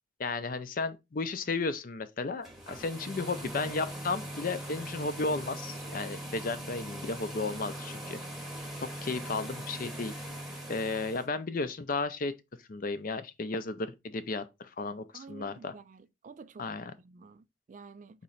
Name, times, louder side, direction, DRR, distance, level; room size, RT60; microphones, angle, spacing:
voice 1, 0.2-8.2 8.8-10.1 10.7-12.3 12.7-15.7 16.6-16.9, left 3 dB, 45° left, 0.5 m, -34 dB
sound 1, 2.3-11.3, right 1 dB, ahead, 0.9 m, -41 dB
voice 2, 15.1-16.7 17.0-18.2, right 5 dB, 40° right, 0.3 m, -50 dB
4.2 x 3.0 x 3.8 m
head